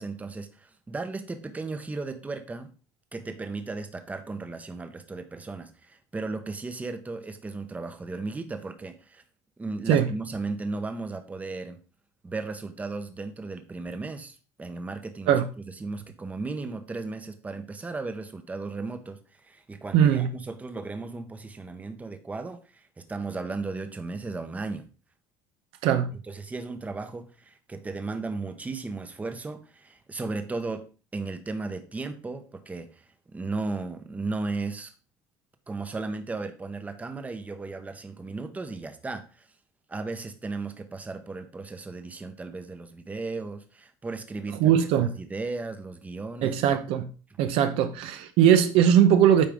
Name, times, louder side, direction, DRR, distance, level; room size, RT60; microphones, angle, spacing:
voice 1, 0.0-2.7 3.1-9.2 9.6-11.8 12.2-15.3 15.8-24.9 26.3-30.8 31.1-34.9 35.7-39.5 39.9-46.6, right 3 dB, 15° right, 0.9 m, -35 dB
voice 2, 19.9-20.3 25.8-26.1 44.6-45.1 46.4-47.1 47.4-49.5, right 9 dB, 70° right, 0.8 m, -20 dB
8.6 x 4.8 x 3.7 m
supercardioid pair, 115°, 10 cm